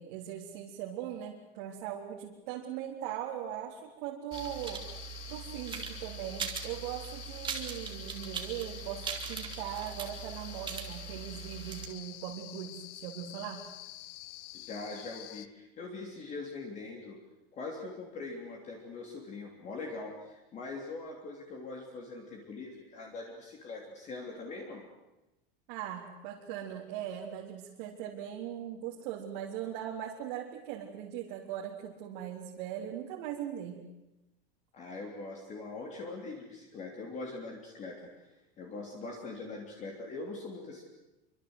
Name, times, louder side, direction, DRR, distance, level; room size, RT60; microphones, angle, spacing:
voice 1, 0.0-13.7 25.7-33.8, right 10 dB, 50° right, -2 dB, 3.6 m, -40 dB
sound 1, 4.3-15.5, left 16 dB, 40° left, 1.1 m, -48 dB
sound 2, 4.3-11.9, right 6 dB, 15° right, 2.8 m, -41 dB
voice 2, 14.5-17.2 17.5-24.8 34.7-38.1 38.6-40.8, left 3 dB, 20° left, 0 dB, 3.3 m, -42 dB
26.5 x 25.0 x 8.1 m, 0.98 s
supercardioid pair, 175°, 32 cm